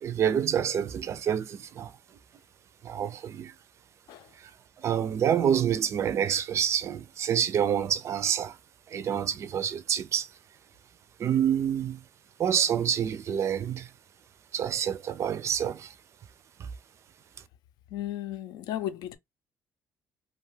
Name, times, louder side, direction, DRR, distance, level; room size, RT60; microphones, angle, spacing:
voice 1, 0.0-1.9 2.8-3.5 4.8-8.6 8.9-10.3 11.2-12.0 12.4-13.9 14.5-15.9, right 9 dB, 45° right, 0.4 m, -27 dB
voice 2, 17.9-19.2, left 12 dB, 85° left, 0.5 m, -34 dB
2.6 x 2.3 x 3.2 m
cardioid pair, 135°, 7 cm